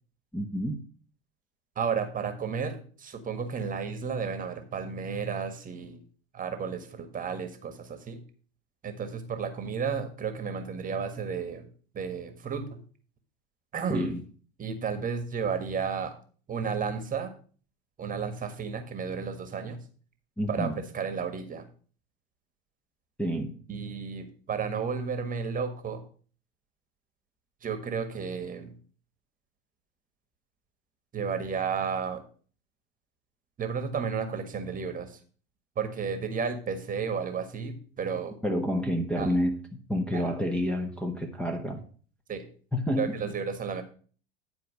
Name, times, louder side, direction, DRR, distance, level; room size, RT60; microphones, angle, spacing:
voice 1, 0.3-0.8 13.9-14.2 20.4-20.8 23.2-23.5 38.4-39.5 39.9-41.8 42.7-43.1, equal, 5° left, -1 dB, 1.2 m, -28 dB
voice 2, 1.8-6.0 6.3-8.2 8.8-11.7 11.9-12.8 13.7-14.2 14.6-16.2 16.5-17.3 18.0-19.8 20.5-21.7 23.7-26.0 27.6-28.7 31.1-32.2 33.6-35.2 35.8-38.3 39.2-39.3 40.1-40.3 42.3-42.5 43.0-43.8, right 6 dB, 25° right, 7 dB, 1.6 m, -32 dB
10.5 x 4.7 x 6.3 m, 0.42 s
hypercardioid pair, 85°, 32 cm